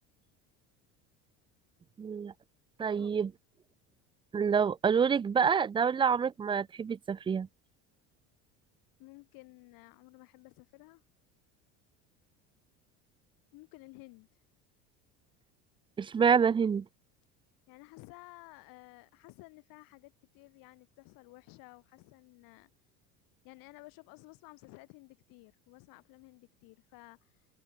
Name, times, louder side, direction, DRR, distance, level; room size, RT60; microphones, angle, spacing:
voice 1, 2.0-2.3 2.8-3.3 4.3-7.5 16.0-16.9, right 6 dB, 15° right, 0.3 m, -27 dB
voice 2, 9.0-11.0 13.5-14.3 17.7-22.7 23.4-27.5, left 24 dB, 70° left, 2.8 m, -54 dB
supercardioid pair, 100°, 35 cm